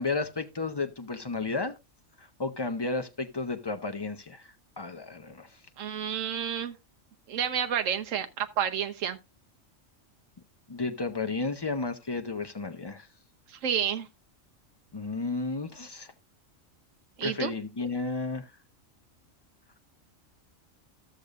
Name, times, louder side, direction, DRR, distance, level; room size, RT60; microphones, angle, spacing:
voice 1, 0.0-1.7 2.2-4.5 4.8-5.5 10.7-13.1 14.9-16.1 17.2-18.5, left 3 dB, 30° left, 0.5 m, -32 dB
voice 2, 5.8-6.8 7.3-9.2 13.5-14.1 17.2-17.5, right 8 dB, 75° right, 1.2 m, -30 dB
14.0 x 6.6 x 2.4 m
omnidirectional pair, 1.4 m